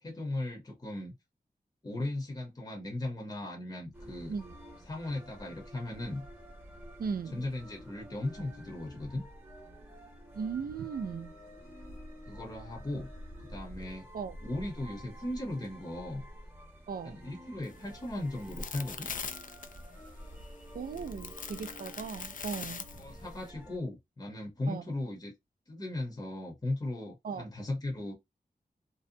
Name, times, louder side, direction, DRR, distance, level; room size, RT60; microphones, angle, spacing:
voice 1, 0.0-1.1 1.8-4.3 4.9-6.2 7.3-9.2 12.3-13.1 13.4-14.1 14.4-16.3 17.0-19.1 23.0-25.3 25.7-28.1, left 1 dB, 25° left, 0.8 m, -37 dB
sound 1, 3.9-23.8, equal, 15° right, 0.9 m, -49 dB
voice 2, 7.0-7.4 10.3-11.3 14.1-14.4 16.9-17.2 20.7-22.9 24.7-24.8 27.2-27.5, right 6 dB, 75° right, 0.4 m, -37 dB
sound 2, 17.6-23.5, left 6 dB, 65° left, 0.4 m, -43 dB
2.6 x 2.1 x 2.6 m
wide cardioid pair, 90°, 15 cm